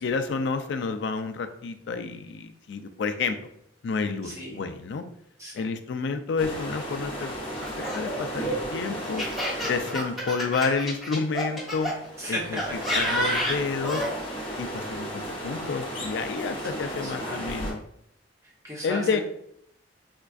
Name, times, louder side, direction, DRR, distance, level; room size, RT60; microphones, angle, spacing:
voice 1, 0.0-3.4 3.8-5.0 5.5-7.4 7.8-9.2 9.6-11.9 12.3-12.6 12.9-14.0 14.6-17.8 18.8-19.2, left 4 dB, 65° left, 8 dB, 0.3 m, -29 dB
voice 2, 4.2-4.6 5.4-5.7 12.2-13.3 16.5-16.7 17.0-17.7 18.4-19.2, equal, 15° right, -3 dB, 0.8 m, -37 dB
sound 1, 6.4-17.7, equal, 25° left, 0.9 m, -35 dB
Laughter, 7.6-11.9 12.6-14.1, equal, ahead, 1.1 m, -29 dB
4.4 x 2.3 x 2.4 m, 0.72 s
head